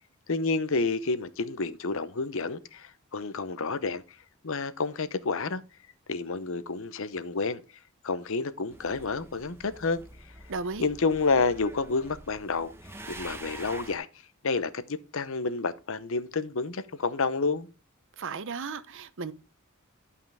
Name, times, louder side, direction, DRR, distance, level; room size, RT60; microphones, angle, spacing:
voice 1, 0.3-4.0 4.4-5.6 6.1-7.6 8.0-10.0 10.8-12.7 13.1-14.1 14.4-14.8 15.1-17.7, left 4 dB, 70° left, 0.8 m, -29 dB
sound 1, 8.7-14.0, right 2 dB, 10° right, 1.0 m, -46 dB
voice 2, 10.5-10.9 18.2-19.3, right 4 dB, 65° right, 0.8 m, -35 dB
11.5 x 5.7 x 3.5 m
head